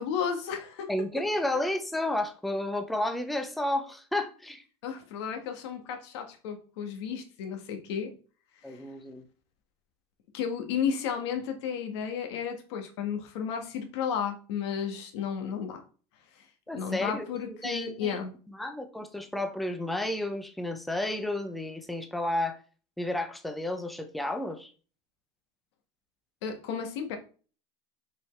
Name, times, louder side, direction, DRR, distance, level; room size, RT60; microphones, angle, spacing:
voice 1, 0.0-0.9 4.8-8.1 8.7-8.8 10.3-15.8 16.4-16.5 16.7-18.3 26.4-27.2, left 7 dB, 75° left, 1.5 m, -33 dB
voice 2, 0.9-4.6 8.6-9.3 16.7-18.2 18.5-22.6 23.0-24.7, left 1 dB, ahead, 0.4 m, -32 dB
6.4 x 4.6 x 3.2 m
cardioid pair, 175°, 14 cm